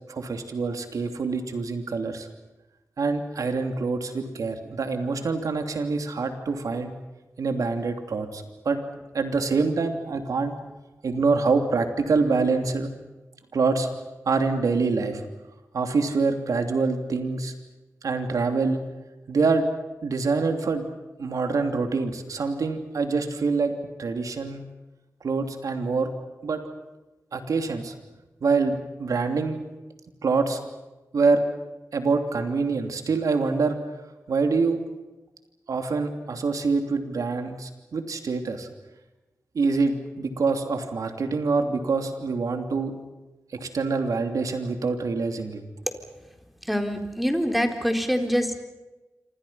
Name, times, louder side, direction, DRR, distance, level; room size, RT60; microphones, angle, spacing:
voice 1, 0.1-2.3 3.0-6.9 7.4-8.8 9.1-10.5 11.0-12.9 13.5-13.9 14.3-15.2 15.7-17.5 18.0-18.8 19.3-19.6 20.0-20.8 21.2-23.7 24.0-24.6 25.2-26.1 26.4-26.6 27.3-27.9 28.4-28.7 29.0-29.6 30.2-30.6 31.1-31.4 31.9-33.8 34.3-34.8 35.7-38.7 39.5-42.9 43.5-45.6, right 4 dB, 90° right, 6 dB, 3.0 m, -25 dB
voice 2, 46.7-48.6, equal, ahead, 5 dB, 4.2 m, -25 dB
27.5 x 26.0 x 5.8 m, 1.1 s
cardioid pair, 60°, 6 cm